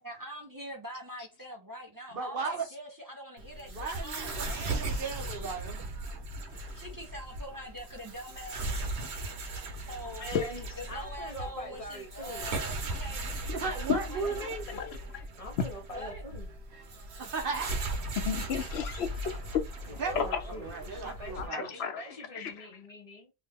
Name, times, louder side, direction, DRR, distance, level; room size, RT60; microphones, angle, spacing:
voice 1, 0.0-4.9 6.8-8.6 9.9-10.3 10.8-13.3 13.6-13.8 14.1-14.5 15.9-16.2, equal, 25° right, 0.5 m, -44 dB
voice 2, 2.1-2.7 3.7-4.4 4.7-5.8 13.5-14.6 17.2-17.7 20.0-21.8, right 4 dB, 60° right, 1.0 m, -35 dB
sound 1, 3.4-21.5, right 2 dB, 90° right, 1.0 m, -38 dB
voice 3, 10.2-12.5 15.4-16.5 20.0-23.3, left 1 dB, 40° left, 0.6 m, -43 dB
voice 4, 14.7-15.3 18.2-20.4 21.1-22.0 22.3-22.7, left 7 dB, 80° left, 0.9 m, -33 dB
2.8 x 2.3 x 3.4 m
omnidirectional pair, 1.0 m